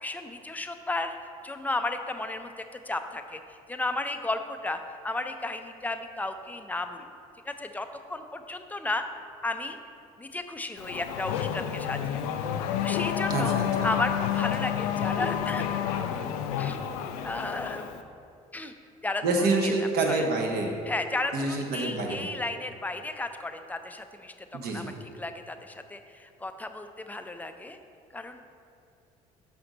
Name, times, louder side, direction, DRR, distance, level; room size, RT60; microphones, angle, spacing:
voice 1, 0.0-1.2 1.4-2.5 2.9-3.4 3.7-7.0 7.5-9.0 9.4-9.8 10.2-12.2 12.8-13.5 13.8-16.3 16.6-16.8 17.2-17.9 18.5-18.7 19.0-20.2 20.9-24.3 24.7-24.9 25.2-27.8 28.1-28.4, left 2 dB, 10° left, 7 dB, 0.5 m, -34 dB
Race car auto racing / Accelerating revving vroom, 10.8-18.0, left 9 dB, 85° left, 0.4 m, -30 dB
voice 2, 13.3-13.9 19.2-20.7 21.3-22.3 24.5-24.9, right 2 dB, 60° right, 1 dB, 1.1 m, -27 dB
5.9 x 5.0 x 3.9 m, 2.4 s
hypercardioid pair, 65°, 18 cm